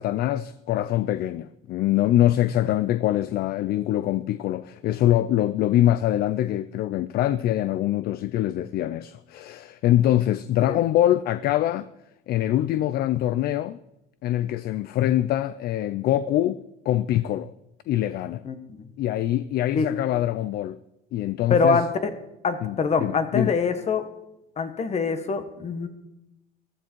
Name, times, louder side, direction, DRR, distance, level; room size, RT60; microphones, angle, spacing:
voice 1, 0.0-11.9 12.3-13.8 14.2-17.5 17.9-18.4 19.0-20.8 21.1-21.8 22.6-23.5, left 13 dB, 50° left, 0.5 m, -24 dB
voice 2, 18.4-18.9 19.7-19.9 21.5-22.1 22.4-24.1 24.6-25.9, left 4 dB, 35° left, 1.5 m, -24 dB
14.5 x 13.0 x 4.6 m
cardioid pair, 125°, 20 cm